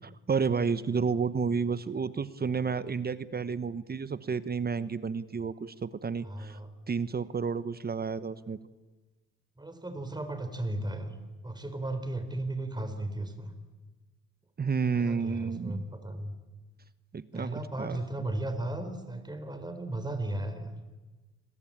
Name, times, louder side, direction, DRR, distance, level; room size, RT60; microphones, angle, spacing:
voice 1, 0.3-6.6 6.9-8.6 14.6-15.8 17.1-18.0, right 5 dB, 30° right, 15 dB, 1.1 m, -31 dB
voice 2, 6.2-6.7 9.6-11.2 11.4-13.5 14.8-16.4 17.3-20.6, right 1 dB, 15° right, 9 dB, 4.3 m, -35 dB
29.0 x 21.5 x 8.8 m, 1.2 s
cardioid pair, 90°, 30 cm